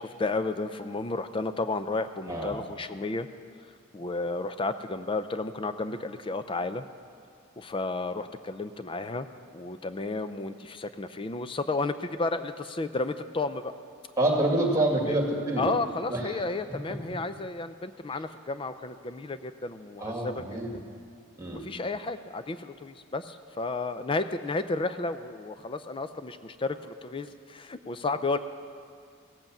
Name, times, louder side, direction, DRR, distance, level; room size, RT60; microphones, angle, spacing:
voice 1, 0.0-3.3 3.9-6.8 7.6-9.3 9.5-13.7 15.0-15.2 15.6-20.4 20.7-20.9 21.5-28.4, left 3 dB, 25° left, 11 dB, 0.4 m, -32 dB
voice 2, 14.2-15.7 16.1-16.3 17.1-17.2 20.0-20.7 21.4-21.7, right 1 dB, 15° right, 1 dB, 1.9 m, -27 dB
16.5 x 7.9 x 7.2 m, 2.2 s
head